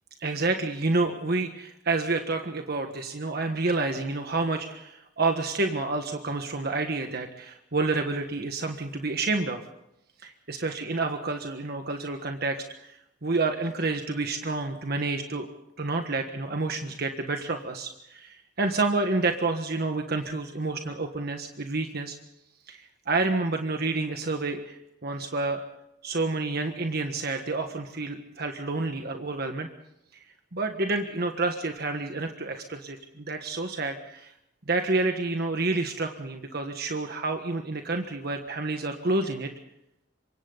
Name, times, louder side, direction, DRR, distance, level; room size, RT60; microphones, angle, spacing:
voice 1, 0.2-9.6 10.2-15.5 15.8-22.2 22.7-25.6 26.0-29.7 30.5-34.3 34.7-39.5, right 3 dB, 55° right, 5 dB, 1.5 m, -29 dB
27.0 x 24.5 x 4.0 m, 0.84 s
head